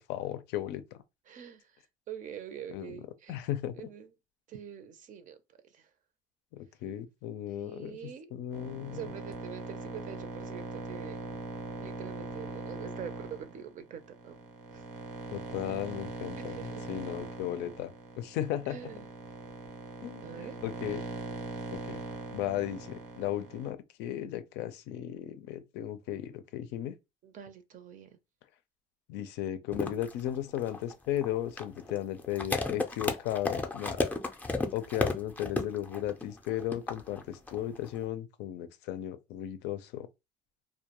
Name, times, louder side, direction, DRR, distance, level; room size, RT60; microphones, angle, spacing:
voice 1, 0.1-0.8 2.7-2.9 3.3-3.9 6.5-8.0 8.3-9.0 15.3-16.5 16.9-17.9 18.2-18.8 20.0-21.0 21.7-22.0 22.3-26.9 29.1-34.0 34.7-40.1, left 12 dB, 90° left, 0.4 m, -35 dB
voice 2, 1.3-3.5 3.7-4.1 4.5-5.9 7.5-8.3 8.9-11.2 11.8-14.4 14.7-14.8 16.4-16.9 18.7-19.1 20.2-20.6 27.2-28.2, right 8 dB, 50° right, 0.5 m, -45 dB
sound 1, 8.5-23.7, right 3 dB, 85° right, 0.7 m, -41 dB
sound 2, 29.7-38.0, left 3 dB, 10° left, 0.4 m, -33 dB
2.2 x 2.1 x 2.9 m
cardioid pair, 110°, 17 cm